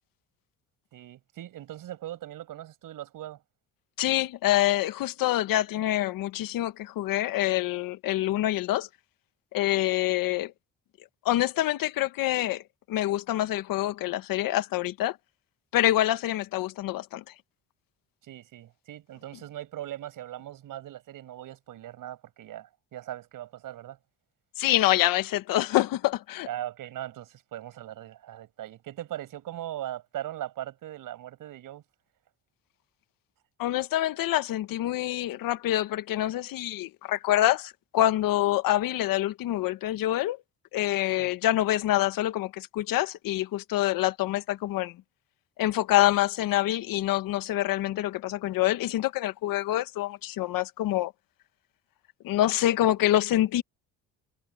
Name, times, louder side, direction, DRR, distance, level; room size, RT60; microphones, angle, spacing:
voice 1, 0.9-3.4 18.2-24.0 26.5-31.8 41.2-41.3, right 13 dB, 70° right, 6.4 m, -39 dB
voice 2, 4.0-8.9 9.5-10.5 11.2-12.6 12.9-15.2 15.7-17.2 24.6-26.5 33.6-40.4 40.7-45.0 45.6-51.1 52.2-53.6, left 14 dB, 75° left, 1.4 m, -26 dB
cardioid pair, 85°, 34 cm